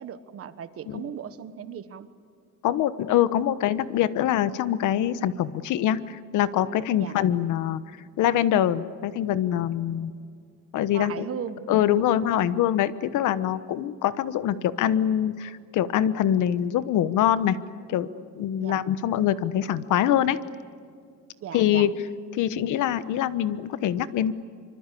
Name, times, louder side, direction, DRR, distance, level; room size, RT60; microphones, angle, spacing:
voice 1, 0.0-2.1 7.0-7.2 10.9-11.6 18.6-18.8 21.4-21.9, right 8 dB, 45° right, 12 dB, 1.3 m, -37 dB
voice 2, 2.6-7.8 8.2-10.1 10.7-11.2 11.7-17.6 17.9-18.1 18.3-20.4 21.5-21.9 22.3-24.3, left 11 dB, 75° left, 14 dB, 1.2 m, -24 dB
25.5 x 25.0 x 8.5 m, 2.2 s
cardioid pair, 150°, 31 cm